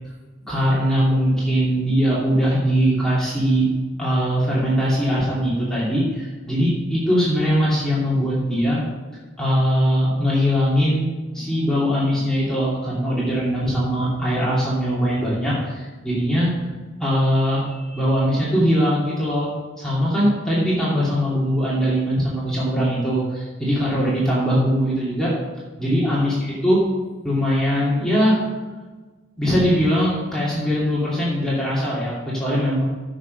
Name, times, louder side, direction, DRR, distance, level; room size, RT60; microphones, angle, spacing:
voice 1, 0.4-3.7 4.0-8.8 9.4-11.1 11.3-16.5 17.0-25.3 25.8-26.4 26.6-26.8 27.2-28.4 29.4-32.8, equal, 5° left, -8 dB, 2.6 m, -21 dB
10.0 x 7.5 x 5.3 m, 1.3 s
head